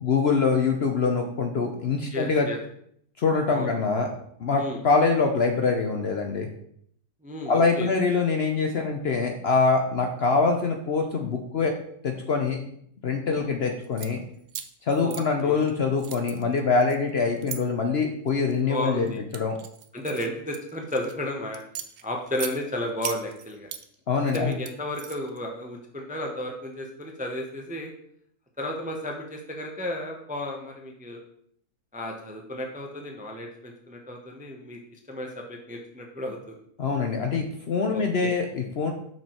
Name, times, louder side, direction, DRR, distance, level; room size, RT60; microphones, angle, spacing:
voice 1, 0.0-2.5 3.2-4.1 4.4-6.5 7.5-11.7 12.0-12.6 13.0-14.2 14.9-19.1 19.3-19.5 24.1-24.5 36.8-38.9, left 4 dB, 55° left, 3 dB, 0.8 m, -24 dB
voice 2, 2.0-2.6 3.5-3.7 4.6-4.8 7.2-7.9 15.0-15.7 18.7-19.2 19.9-21.6 22.0-23.7 24.3-27.9 28.6-31.2 31.9-36.6 37.9-38.3, left 1 dB, 10° right, 2 dB, 0.5 m, -33 dB
sound 1, 13.8-14.1 14.5-15.7 16.0-17.6 18.3-18.6 19.1-21.1 21.5-22.6 23.0-23.8 24.2-25.4, right 10 dB, 65° right, 0.9 m, -38 dB
5.9 x 4.5 x 4.4 m, 0.67 s
omnidirectional pair, 1.6 m